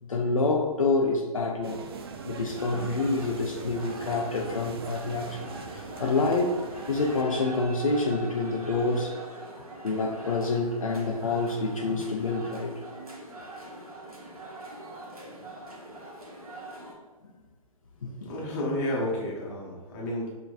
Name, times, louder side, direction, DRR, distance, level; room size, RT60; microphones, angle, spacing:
voice 1, 0.0-1.8 2.2-5.5 5.7-9.1 9.8-12.7 18.0-18.3, left 3 dB, 65° left, 0 dB, 0.6 m, -27 dB
sound 1, 1.6-7.2, right 5 dB, 45° right, 0.4 m, -42 dB
sound 2, 2.5-16.9, right 1 dB, 80° right, 1.2 m, -42 dB
voice 2, 18.2-20.3, left 1 dB, 30° left, -3 dB, 1.2 m, -31 dB
5.8 x 3.0 x 2.4 m, 1.3 s
figure-of-eight pair, 125°, 19 cm